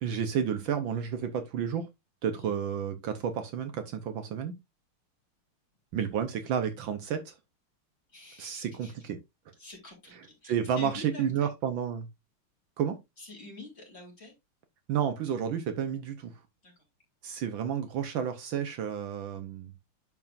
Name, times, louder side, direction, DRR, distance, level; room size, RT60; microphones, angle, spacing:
voice 1, 0.0-1.9 2.2-4.5 5.9-7.3 8.4-9.2 10.1-12.1 12.8-13.0 14.9-16.3 17.2-19.7, right 8 dB, 70° right, 1.5 m, -31 dB
voice 2, 8.1-8.9 9.6-11.5 13.2-14.3 16.6-16.7, left 2 dB, 30° left, 3.5 m, -47 dB
10.5 x 4.9 x 2.5 m
omnidirectional pair, 2.4 m